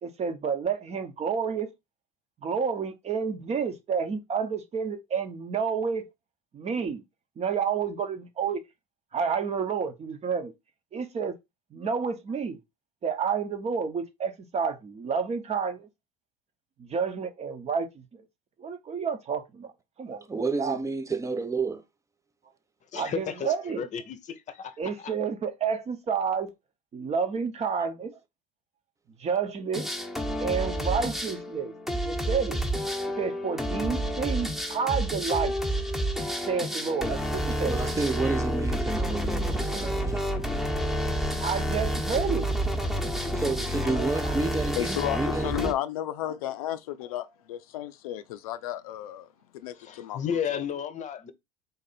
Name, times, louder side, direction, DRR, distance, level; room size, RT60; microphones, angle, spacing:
voice 1, 0.0-1.7 2.4-6.1 6.5-7.0 7.4-8.6 9.1-10.5 10.9-11.4 11.7-12.6 13.0-15.9 16.8-18.2 18.6-19.7 20.0-20.2 20.6-20.8 22.9-23.8 24.8-26.5 26.9-28.1 29.2-29.9 30.4-32.6 33.2-35.5 36.5-37.8 41.4-42.5 43.9-44.3, right 6 dB, 35° right, 0.9 m, -30 dB
voice 2, 20.3-21.8 37.6-40.2 43.3-45.7, right 3 dB, 15° right, 0.6 m, -30 dB
voice 3, 22.9-25.1 49.7-51.3, left 8 dB, 40° left, 0.7 m, -33 dB
sound 1, 29.7-45.7, equal, ahead, 1.0 m, -29 dB
voice 4, 44.8-49.3 49.5-50.2, left 12 dB, 85° left, 0.4 m, -33 dB
4.0 x 2.6 x 4.1 m
hypercardioid pair, 85°, 18 cm